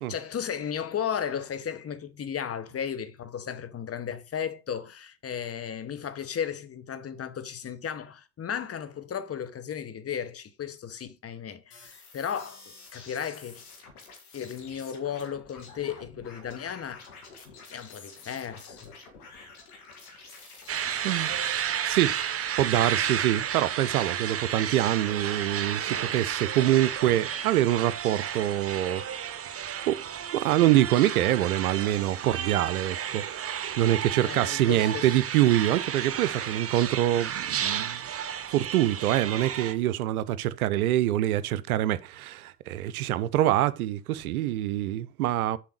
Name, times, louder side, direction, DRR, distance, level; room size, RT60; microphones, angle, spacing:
voice 1, 0.1-13.6 14.3-17.1 17.4-17.5 17.7-18.9 34.2-35.1, left 8 dB, 30° left, 1.1 m, -35 dB
sound 1, 11.7-21.6, left 4 dB, 75° left, 2.1 m, -49 dB
sound 2, 20.7-39.7, right 9 dB, 30° right, 0.9 m, -32 dB
voice 2, 21.0-21.5 21.8-22.2 22.6-29.0 29.9-30.0 30.3-33.5 33.8-38.0 38.5-45.6, right 13 dB, 70° right, 0.6 m, -25 dB
6.9 x 4.7 x 6.6 m
figure-of-eight pair, 50°, 44 cm